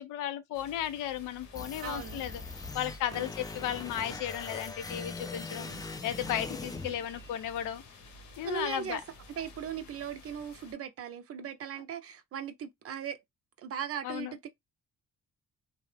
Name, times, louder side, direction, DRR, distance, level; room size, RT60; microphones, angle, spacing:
voice 1, 0.0-2.3 2.7-5.7 6.0-7.8 8.4-9.0 14.0-14.3, left 11 dB, 90° left, 0.6 m, -35 dB
sound 1, 0.5-10.7, left 1 dB, 70° left, 0.9 m, -52 dB
sound 2, 1.6-7.6, left 3 dB, 15° left, 0.3 m, -41 dB
voice 2, 1.8-2.3 3.1-3.3 5.6-5.8 8.4-9.0 9.4-13.2 13.6-14.5, right 8 dB, 50° right, 0.5 m, -39 dB
2.6 x 2.0 x 3.2 m
cardioid pair, 90°, 30 cm